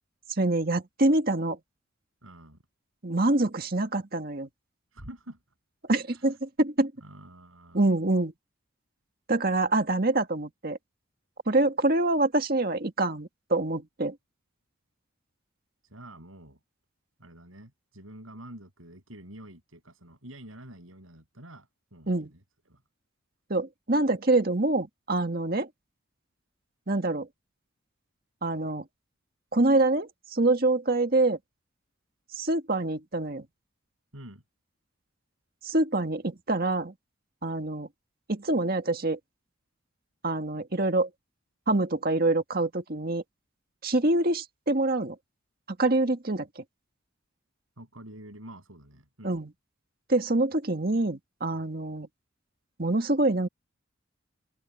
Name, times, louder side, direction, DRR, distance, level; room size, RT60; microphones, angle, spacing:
voice 1, 0.4-1.6 3.0-4.5 5.9-6.9 7.7-8.3 9.3-10.8 11.5-14.1 22.1-22.3 23.5-25.7 26.9-27.3 28.4-28.8 29.5-31.4 32.4-33.4 35.7-36.9 37.4-37.9 38.3-39.2 40.2-41.1 41.7-43.2 43.8-45.2 45.7-46.6 49.2-49.5 50.1-52.1 52.8-53.5, right 2 dB, 45° right, 1.9 m, -25 dB
voice 2, 2.2-2.6 4.9-5.4 6.1-6.4 7.0-7.8 15.8-16.6 17.2-22.8 34.1-34.4 47.8-49.4, right 1 dB, 85° right, 7.5 m, -47 dB
head